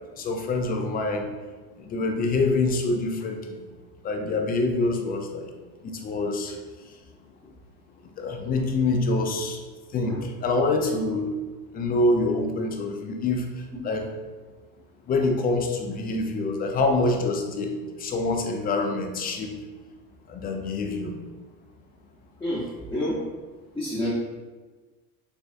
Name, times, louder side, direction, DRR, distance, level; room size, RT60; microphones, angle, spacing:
voice 1, 0.2-1.3 1.8-3.6 4.0-5.5 5.8-6.5 8.2-9.6 9.9-11.3 11.7-14.1 15.1-19.6 20.3-21.1, left 2 dB, 20° left, 3 dB, 0.4 m, -26 dB
voice 2, 22.4-23.2 23.7-24.1, left 1 dB, 5° left, -9 dB, 0.8 m, -28 dB
3.4 x 3.3 x 2.5 m, 1.3 s
supercardioid pair, 100°, 44 cm